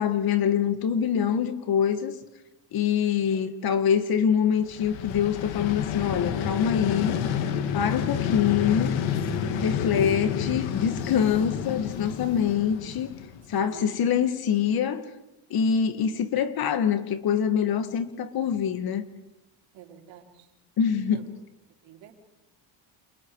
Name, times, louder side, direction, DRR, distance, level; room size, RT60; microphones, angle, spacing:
voice 1, 0.0-2.1 2.7-7.2 7.7-9.0 9.6-13.1 13.5-15.1 15.5-19.1 20.8-21.3, left 8 dB, 55° left, 2.1 m, -25 dB
Vehicle, 4.7-13.6, left 8 dB, 85° left, 2.4 m, -29 dB
voice 2, 9.4-9.7 10.8-10.9 13.6-13.9 19.7-20.5 21.1-21.3 21.8-22.1, right 9 dB, 80° right, 4.3 m, -47 dB
29.5 x 28.0 x 4.9 m
cardioid pair, 135°, 44 cm